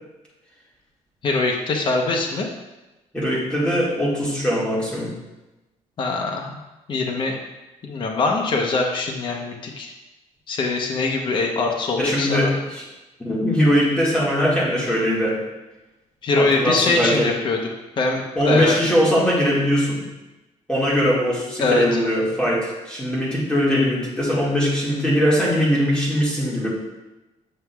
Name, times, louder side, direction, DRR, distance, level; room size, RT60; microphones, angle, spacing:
voice 1, 1.2-2.5 6.0-6.5 6.9-7.4 7.8-9.9 10.5-12.5 16.2-17.6 18.0-18.8 21.6-22.0, left 3 dB, 40° left, 2 dB, 0.8 m, -23 dB
voice 2, 3.1-5.1 12.0-12.8 13.2-15.4 16.3-17.3 18.3-20.0 20.7-26.7, equal, 10° left, -6 dB, 1.7 m, -21 dB
7.6 x 5.9 x 2.3 m, 1.0 s
cardioid pair, 145°, 12 cm